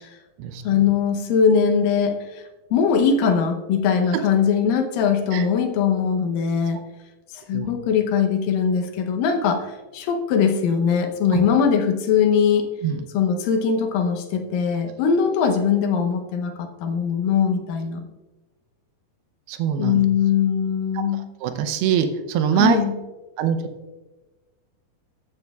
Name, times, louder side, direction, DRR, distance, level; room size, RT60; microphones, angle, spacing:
voice 1, 0.6-2.4 2.7-6.8 7.3-12.6 13.1-18.0 19.8-21.2 22.5-23.0, left 7 dB, 70° left, 4 dB, 2.4 m, -21 dB
voice 2, 19.5-20.0 21.4-22.8 23.4-23.6, right 8 dB, 85° right, 7 dB, 2.8 m, -22 dB
15.0 x 9.4 x 2.4 m, 1.2 s
omnidirectional pair, 4.5 m